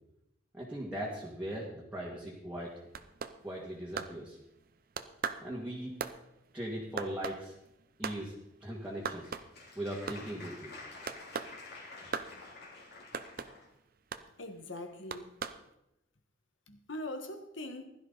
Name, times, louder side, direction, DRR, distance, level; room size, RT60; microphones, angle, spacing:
voice 1, 0.5-2.8 3.4-4.4 5.4-6.0 6.5-7.5 8.0-8.3 8.6-9.3 9.8-10.7, right 1 dB, 5° right, -5 dB, 2.2 m, -39 dB
sound 1, 2.6-4.7 5.0-8.2 8.5-8.6 8.9-9.7 9.9-10.5 11.1-11.6 12.1-12.3 13.1-13.5 14.1-14.3 15.1-15.6, right 5 dB, 50° right, 0.7 m, -39 dB
Applause, 8.8-13.7, left 3 dB, 55° left, 3.3 m, -50 dB
voice 2, 14.4-15.3 16.7-17.9, left 1 dB, 80° left, 7 dB, 1.6 m, -42 dB
16.0 x 12.0 x 4.1 m, 0.84 s
head